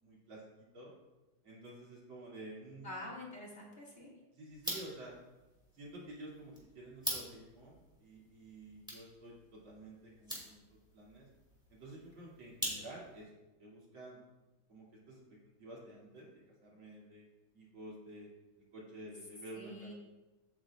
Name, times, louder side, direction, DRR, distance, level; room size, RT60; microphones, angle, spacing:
voice 1, 0.0-0.4 0.7-0.9 1.4-2.9 4.3-5.1 5.7-11.3 11.7-14.2 14.7-16.3 16.6-17.3 17.5-18.3 18.7-19.9, right 1 dB, 80° right, -5 dB, 3.7 m, -51 dB
voice 2, 2.8-4.1 19.6-19.9, left 1 dB, 30° left, -4 dB, 2.5 m, -46 dB
sound 1, 4.5-13.2, equal, ahead, 2.6 m, -45 dB
15.5 x 8.8 x 2.5 m, 1.1 s
omnidirectional pair, 2.2 m